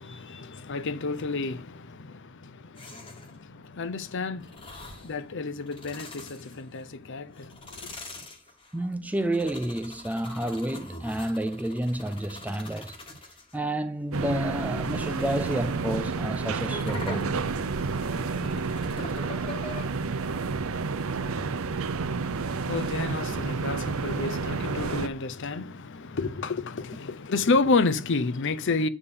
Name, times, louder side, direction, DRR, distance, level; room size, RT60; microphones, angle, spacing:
voice 1, 0.0-8.0 22.4-28.9, left 3 dB, 55° left, 0.6 m, -30 dB
sound 1, 2.8-3.4 4.4-5.2 5.6-6.9 7.3-13.6 14.1-19.8, left 3 dB, 25° left, 1.5 m, -44 dB
voice 2, 8.7-13.0 13.5-17.5, right 1 dB, 5° right, 0.4 m, -30 dB
sound 2, 14.1-25.1, right 4 dB, 65° right, 0.6 m, -30 dB
8.2 x 3.7 x 6.7 m
head